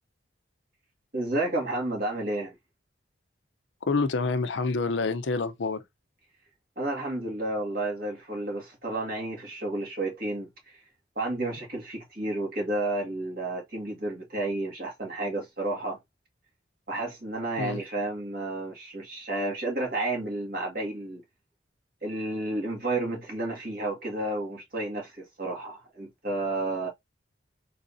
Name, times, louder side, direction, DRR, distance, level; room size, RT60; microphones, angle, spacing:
voice 1, 1.1-2.5 6.8-10.8 11.2-16.0 16.9-21.2 22.0-26.9, right 2 dB, 50° right, 2.0 m, -31 dB
voice 2, 3.9-5.8 17.6-17.8, left 3 dB, 75° left, 0.6 m, -27 dB
4.0 x 3.6 x 2.6 m
head